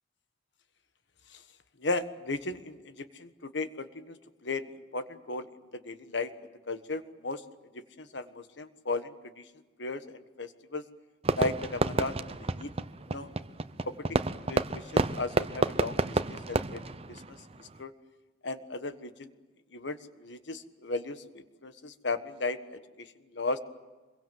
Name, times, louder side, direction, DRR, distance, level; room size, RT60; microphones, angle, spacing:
voice 1, 1.8-4.1 4.4-5.4 5.8-6.3 6.7-7.4 8.0-9.4 9.8-10.8 11.3-12.7 13.1-13.3 13.8-13.9 14.5-16.8 17.1-17.2 17.6-17.9 18.4-19.3 19.7-23.1 23.3-23.6, left 3 dB, 70° left, 11 dB, 1.4 m, -36 dB
Fireworks, 11.2-17.8, right 2 dB, 30° right, 0.7 m, -30 dB
25.5 x 22.5 x 7.7 m, 1.3 s
head